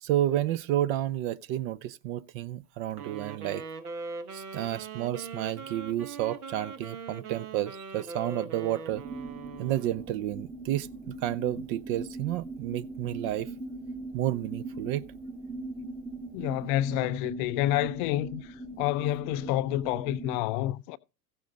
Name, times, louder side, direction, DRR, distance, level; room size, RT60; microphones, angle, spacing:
voice 1, 0.0-3.6 4.3-9.0 9.6-13.5 14.1-15.0, right 13 dB, 35° right, 0.5 m, -31 dB
Wind instrument woodwind instrument, 2.9-10.1, right 4 dB, 70° right, 1.8 m, -41 dB
sound 1, 8.9-20.4, right 2 dB, 5° right, 1.0 m, -40 dB
voice 2, 16.3-21.0, left 14 dB, 35° left, 0.5 m, -29 dB
15.0 x 6.9 x 3.9 m
figure-of-eight pair, 90°, 47 cm